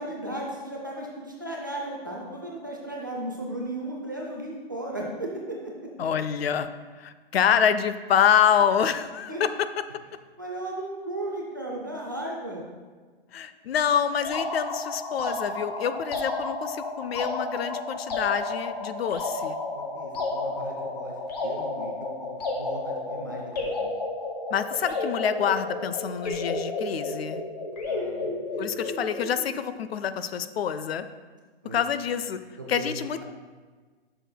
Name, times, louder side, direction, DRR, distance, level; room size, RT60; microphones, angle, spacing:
voice 1, 0.0-5.9 9.3-9.4 10.4-12.6 19.7-21.1 21.4-21.9 22.2-22.3 22.6-23.8 27.9-28.7 31.6-31.8 32.6-32.9, right 1 dB, 20° right, -2 dB, 0.4 m, -36 dB
voice 2, 6.0-6.7 7.0-9.7 13.3-19.6 24.5-27.4 28.6-31.0 31.7-32.4 32.7-33.2, left 8 dB, 75° left, 12 dB, 0.5 m, -26 dB
sound 1, 14.2-29.4, left 2 dB, 40° left, 1.0 m, -32 dB
8.1 x 6.0 x 2.2 m, 1.4 s
hypercardioid pair, 175°, 31 cm